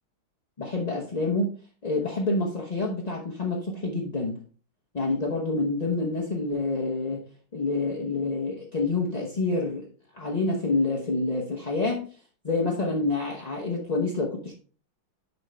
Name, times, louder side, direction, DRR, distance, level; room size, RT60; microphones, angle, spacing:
voice 1, 0.6-1.5 1.8-4.4 4.9-7.2 7.5-9.9 10.1-12.1 12.4-14.5, left 3 dB, 35° left, -3 dB, 0.6 m, -27 dB
6.9 x 5.3 x 3.4 m, 0.39 s
omnidirectional pair, 2.2 m